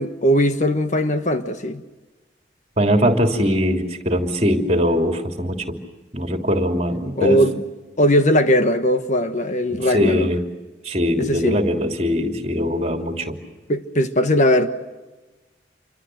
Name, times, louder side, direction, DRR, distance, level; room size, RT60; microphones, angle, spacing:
voice 1, 0.0-1.8 7.2-7.6 8.0-10.3 11.2-11.6 13.7-14.7, equal, 40° left, 1.3 m, -19 dB
voice 2, 2.8-5.7 6.1-7.4 9.7-10.4 10.8-13.3, equal, 35° right, 3.1 m, -21 dB
28.5 x 24.5 x 7.8 m
head